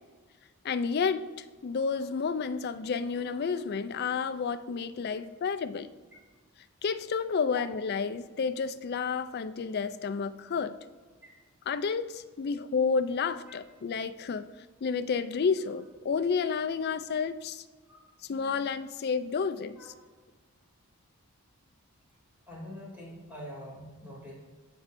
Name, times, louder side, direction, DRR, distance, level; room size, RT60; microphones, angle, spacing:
voice 1, 0.6-5.9 6.8-10.8 11.7-14.5 14.8-17.6 18.3-19.8, left 5 dB, 45° left, 12 dB, 0.4 m, -30 dB
voice 2, 22.5-24.3, equal, 10° right, -5 dB, 2.6 m, -44 dB
14.0 x 5.4 x 2.6 m, 1.4 s
head